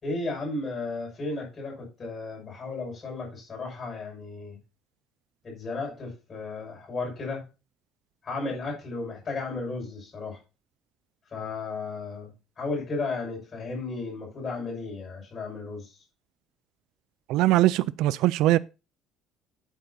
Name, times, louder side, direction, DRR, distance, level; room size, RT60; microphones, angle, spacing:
voice 1, 0.0-4.6 5.4-7.4 8.2-10.4 11.3-12.3 12.6-15.9, left 3 dB, 25° left, 6.7 m, -34 dB
voice 2, 17.3-18.6, right 16 dB, 70° right, 0.4 m, -21 dB
11.5 x 8.4 x 2.7 m
cardioid pair, 175°, 0 cm